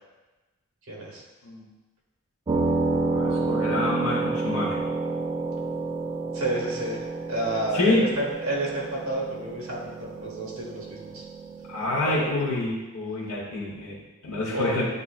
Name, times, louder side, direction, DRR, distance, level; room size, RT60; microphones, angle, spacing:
voice 1, 0.9-1.2 6.3-11.3 12.0-12.3 14.5-14.9, right 1 dB, 70° right, -3 dB, 1.1 m, -30 dB
sound 1, 2.5-12.7, right 3 dB, 25° right, 0.3 m, -30 dB
voice 2, 3.1-4.8 7.7-8.0 11.7-14.9, left 2 dB, 75° left, -5 dB, 0.9 m, -27 dB
7.1 x 2.7 x 2.4 m, 1.2 s
head